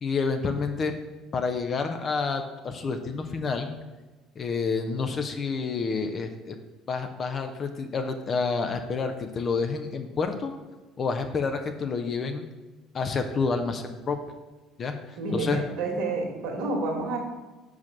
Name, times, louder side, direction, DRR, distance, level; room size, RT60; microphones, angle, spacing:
voice 1, 0.0-0.9 1.3-3.7 4.4-6.6 6.9-10.5 11.0-12.5 12.9-14.2 14.8-15.6, left 4 dB, 40° left, 6 dB, 0.7 m, -29 dB
voice 2, 15.2-17.2, right 3 dB, 65° right, 0 dB, 1.7 m, -29 dB
5.8 x 4.8 x 6.1 m, 1.2 s
hypercardioid pair, 60°, 0 cm